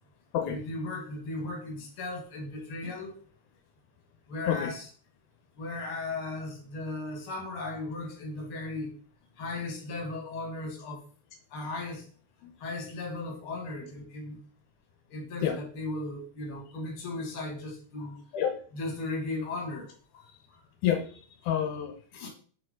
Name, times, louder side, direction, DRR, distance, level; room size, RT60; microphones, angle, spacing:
voice 1, 0.5-3.1 4.3-4.9 5.6-8.9 9.4-11.0 11.5-12.1 12.6-14.4 15.1-18.2 18.7-20.6 22.1-22.3, left 2 dB, 45° left, 1 dB, 2.4 m, -36 dB
voice 2, 20.8-21.9, left 9 dB, 85° left, 5 dB, 2.2 m, -28 dB
5.9 x 4.7 x 3.7 m, 0.42 s
omnidirectional pair, 3.6 m